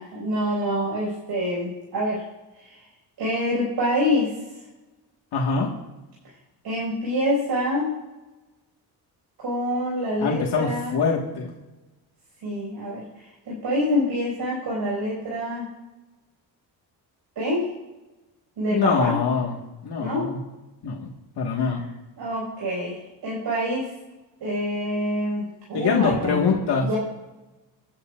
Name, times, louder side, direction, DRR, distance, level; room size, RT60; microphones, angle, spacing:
voice 1, 0.0-2.2 2.6-2.8 3.2-4.3 6.6-7.9 9.4-11.0 12.4-15.6 17.4-17.7 18.6-19.2 20.0-20.3 21.6-21.8 22.2-23.9 24.4-26.4 26.8-27.0, equal, 75° right, -4 dB, 5.6 m, -26 dB
voice 2, 5.3-5.7 10.2-11.5 18.7-19.6 19.8-20.4 20.8-21.1 21.4-21.8 25.7-26.9, left 5 dB, 75° left, -1 dB, 1.9 m, -24 dB
25.5 x 11.5 x 2.6 m, 1.1 s
cardioid pair, 135°, 40 cm